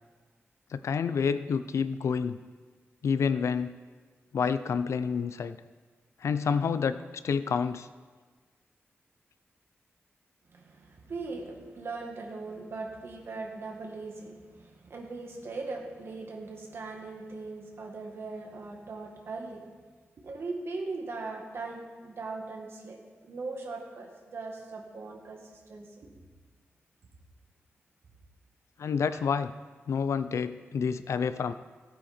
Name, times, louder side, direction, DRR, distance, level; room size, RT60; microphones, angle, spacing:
voice 1, 0.7-2.4 3.0-3.8 4.3-5.6 6.2-7.0 7.2-7.9 28.8-29.5 29.9-31.5, left 6 dB, 85° left, 13 dB, 0.5 m, -28 dB
voice 2, 10.5-19.7 20.2-26.1 29.1-29.2, right 3 dB, 60° right, 1 dB, 2.0 m, -40 dB
16.0 x 8.9 x 4.4 m, 1.5 s
wide cardioid pair, 170°, 5 cm